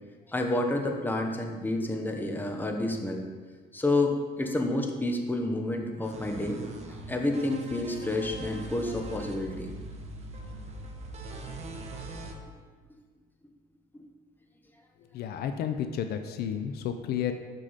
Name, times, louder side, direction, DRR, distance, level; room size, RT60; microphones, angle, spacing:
voice 1, 0.3-3.3 3.7-6.6 7.1-9.7, left 2 dB, 10° left, 2 dB, 0.9 m, -29 dB
sound 1, 6.0-12.3, right 2 dB, 40° right, 1.1 m, -41 dB
voice 2, 15.1-17.3, left 9 dB, 70° left, 8 dB, 0.6 m, -31 dB
6.5 x 6.3 x 4.1 m, 1.5 s
cardioid pair, 110°, 17 cm